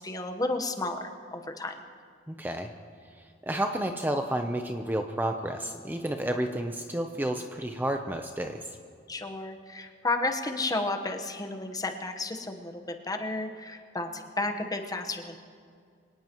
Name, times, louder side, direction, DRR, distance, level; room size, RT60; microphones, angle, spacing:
voice 1, 0.0-1.8 9.1-15.4, left 2 dB, 20° left, 5 dB, 1.1 m, -32 dB
voice 2, 2.3-2.7 3.4-8.6, right 1 dB, 10° right, 5 dB, 0.6 m, -31 dB
25.0 x 18.5 x 3.0 m, 2.2 s
head